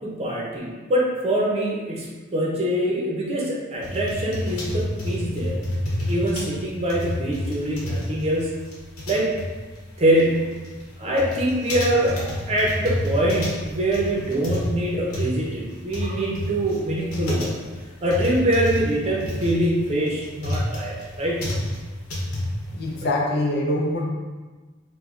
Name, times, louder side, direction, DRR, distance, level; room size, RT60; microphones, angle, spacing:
voice 1, 0.0-5.6 6.1-8.6 9.1-9.3 10.0-10.5 11.0-17.5 18.0-21.5, right 1 dB, 30° right, -3 dB, 0.6 m, -24 dB
sound 1, 3.8-23.0, left 1 dB, 90° left, 0.9 m, -29 dB
voice 2, 22.7-24.0, left 1 dB, 50° left, -3 dB, 0.6 m, -24 dB
4.8 x 2.2 x 2.5 m, 1.3 s
head